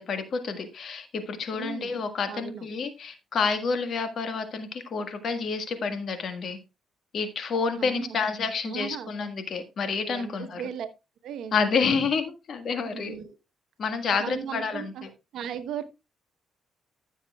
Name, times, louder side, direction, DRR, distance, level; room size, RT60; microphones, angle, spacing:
voice 1, 0.0-6.6 7.1-10.6 11.5-13.2 13.8-15.1, left 5 dB, 60° left, 8 dB, 1.5 m, -29 dB
voice 2, 1.5-2.0 2.3-2.7 7.8-8.2 8.6-9.1 10.1-10.9 11.2-11.6 12.9-13.4 14.2-15.0 15.3-15.8, right 8 dB, 75° right, 10 dB, 1.0 m, -36 dB
14.5 x 7.3 x 2.3 m, 0.27 s
cardioid pair, 90°, 0 cm